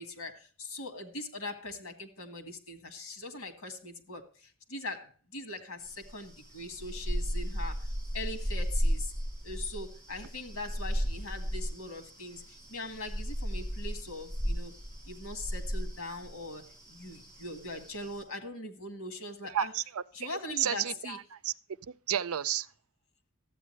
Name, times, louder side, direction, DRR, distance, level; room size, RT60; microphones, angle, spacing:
voice 1, 0.0-7.9 8.1-9.1 9.4-14.8 15.1-19.7 20.1-21.2, left 2 dB, 85° left, 2.0 m, -41 dB
sound 1, 5.8-18.2, equal, 15° right, 6.0 m, -35 dB
voice 2, 19.5-21.5 22.1-22.7, right 10 dB, 90° right, 0.5 m, -32 dB
13.0 x 8.4 x 3.2 m
head